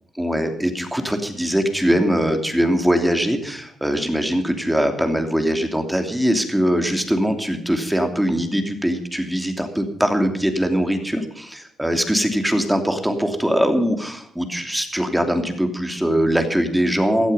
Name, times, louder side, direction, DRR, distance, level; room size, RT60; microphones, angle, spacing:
voice 1, 0.2-17.3, equal, 5° right, 6 dB, 2.9 m, -21 dB
17.0 x 12.0 x 5.6 m, 0.64 s
cardioid pair, 90°, 0 cm